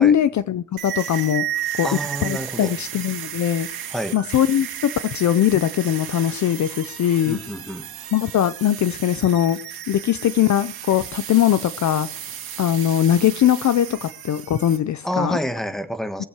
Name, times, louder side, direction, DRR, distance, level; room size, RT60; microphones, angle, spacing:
voice 1, 0.0-1.5 1.8-3.7 4.1-7.4 8.1-9.6 9.9-12.1 12.6-15.4 16.2-16.3, left 10 dB, 45° left, 0.6 m, -20 dB
sound 1, 0.8-14.8, right 11 dB, 65° right, 2.1 m, -33 dB
voice 2, 1.8-2.7 3.9-4.2 7.2-7.9 15.0-16.2, equal, ahead, 1.4 m, -28 dB
23.0 x 8.0 x 4.5 m
cardioid pair, 105°, 40 cm